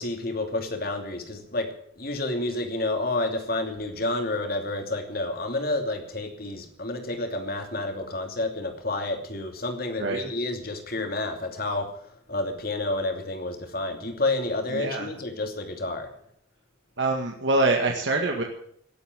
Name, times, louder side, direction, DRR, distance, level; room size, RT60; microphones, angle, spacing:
voice 1, 0.0-11.9 12.3-16.1, left 2 dB, 50° left, 5 dB, 2.8 m, -29 dB
voice 2, 14.7-15.1 17.0-18.4, right 2 dB, 70° right, 2 dB, 2.0 m, -24 dB
18.0 x 8.5 x 9.1 m, 0.68 s
head